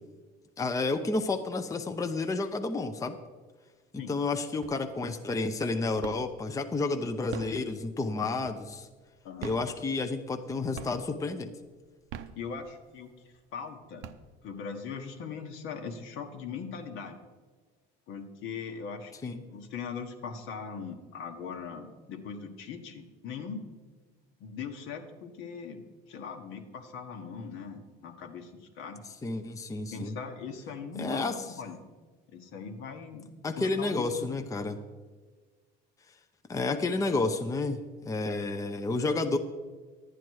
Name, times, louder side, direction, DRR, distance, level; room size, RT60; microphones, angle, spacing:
voice 1, 0.6-3.2 3.9-8.9 9.4-11.5 19.2-19.4 29.2-30.1 31.0-31.4 33.4-34.8 36.5-39.4, left 3 dB, 15° left, 7 dB, 0.6 m, -30 dB
sound 1, 4.6-5.1 5.5-6.5 7.1-8.9 9.3-10.4 10.7-11.3 11.9-13.0 13.5-13.6 13.8-14.7, right 9 dB, 70° right, 0.7 m, -43 dB
voice 2, 12.3-13.1 13.5-14.1 14.4-17.2 18.1-23.6 24.4-29.0 29.9-31.8 32.3-33.3 33.6-34.3, left 6 dB, 70° left, 6 dB, 1.3 m, -40 dB
11.0 x 9.1 x 4.6 m, 1.4 s
supercardioid pair, 105°, 21 cm